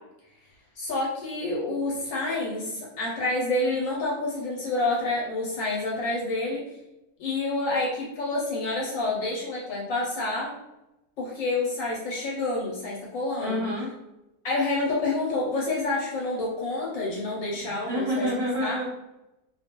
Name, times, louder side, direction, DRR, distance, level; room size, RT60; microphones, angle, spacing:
voice 1, 0.8-6.6 7.2-10.5 11.2-13.6 14.4-18.3 18.6-18.8, left 2 dB, 65° left, -3 dB, 0.9 m, -28 dB
voice 2, 13.4-13.9 17.5-18.9, equal, 55° right, -7 dB, 0.8 m, -28 dB
2.5 x 2.2 x 2.8 m, 0.94 s
omnidirectional pair, 1.6 m